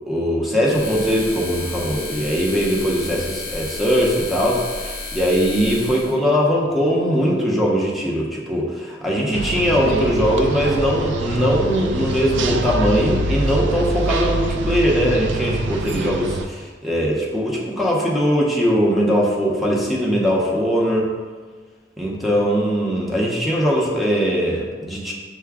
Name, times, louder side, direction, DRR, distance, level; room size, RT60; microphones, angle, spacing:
voice 1, 0.1-21.1 22.0-25.1, equal, ahead, -3 dB, 0.7 m, -20 dB
sound 1, 0.6-6.2, left 3 dB, 60° left, 0.7 m, -32 dB
sound 2, 9.3-16.4, right 2 dB, 85° right, 0.4 m, -25 dB
5.7 x 2.2 x 3.5 m, 1.4 s
head